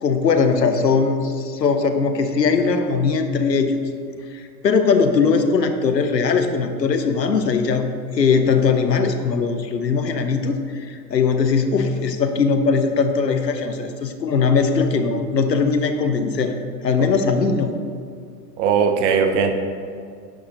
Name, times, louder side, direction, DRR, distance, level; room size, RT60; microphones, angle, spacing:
voice 1, 0.0-3.8 4.3-7.9 8.1-16.5 16.8-17.7, left 5 dB, 85° left, 7 dB, 0.9 m, -20 dB
voice 2, 18.6-19.5, right 6 dB, 45° right, 6 dB, 1.0 m, -19 dB
9.9 x 6.1 x 3.9 m, 2.2 s
figure-of-eight pair, 85°, 49 cm